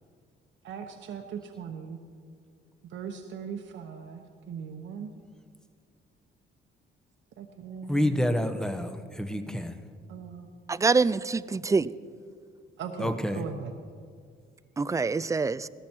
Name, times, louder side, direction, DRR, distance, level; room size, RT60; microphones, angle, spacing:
voice 1, 0.6-2.0 2.8-5.1 7.4-8.2 10.1-10.5 12.8-13.7, right 6 dB, 70° right, 1.1 m, -39 dB
voice 2, 7.9-9.8 13.0-13.4, equal, 5° left, 1.0 m, -28 dB
voice 3, 10.7-11.9 14.8-15.7, right 4 dB, 15° right, 0.4 m, -25 dB
17.0 x 13.5 x 4.5 m
cardioid pair, 90°, 20 cm